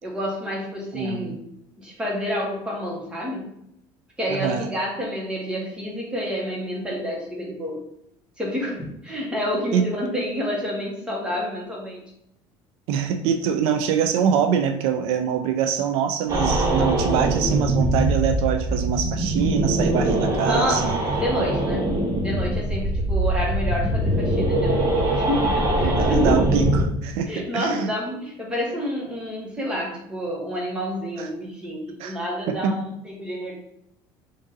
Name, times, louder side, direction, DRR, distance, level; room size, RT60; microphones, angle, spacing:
voice 1, 0.0-1.4 1.8-3.5 4.2-7.8 8.4-12.0 20.4-21.9 22.2-24.9 25.3-26.4 27.3-33.5, equal, 10° right, -3 dB, 1.2 m, -28 dB
voice 2, 0.9-1.4 4.3-4.7 9.7-9.9 12.9-21.0 22.0-22.2 25.8-27.9 31.2-31.3 32.0-32.2 32.5-32.8, right 8 dB, 75° right, 7 dB, 0.4 m, -24 dB
sound 1, 16.3-26.8, right 1 dB, 30° right, 0.9 m, -22 dB
3.7 x 2.6 x 3.9 m, 0.77 s
cardioid pair, 145°, 10 cm